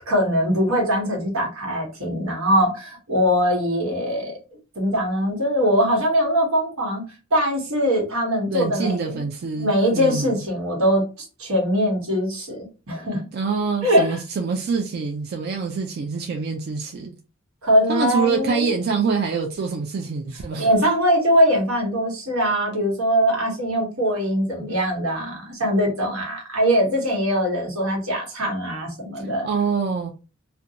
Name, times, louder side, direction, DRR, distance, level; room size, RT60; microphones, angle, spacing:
voice 1, 0.1-4.3 4.7-7.0 7.3-9.2 9.6-13.2 13.8-14.2 17.6-18.7 20.5-29.5, equal, 85° right, 1.1 m, -22 dB
voice 2, 8.5-10.4 13.3-17.2 17.9-20.7 29.4-30.1, right 5 dB, 50° right, 0.3 m, -25 dB
2.5 x 2.2 x 2.7 m
head